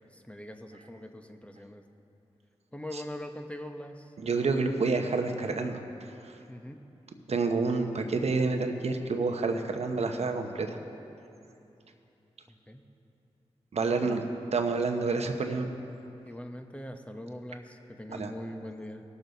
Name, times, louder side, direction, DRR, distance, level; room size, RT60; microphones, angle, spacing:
voice 1, 0.0-1.8 2.7-4.1 6.5-6.9 12.5-12.9 14.0-14.2 16.2-19.0, left 1 dB, 10° left, 5 dB, 0.9 m, -42 dB
voice 2, 4.2-5.8 6.2-6.4 7.3-10.8 13.7-14.2 14.5-15.7 18.1-18.3, right 4 dB, 70° right, 5 dB, 0.9 m, -28 dB
18.0 x 7.0 x 4.0 m, 2.8 s
cardioid pair, 40°, 12 cm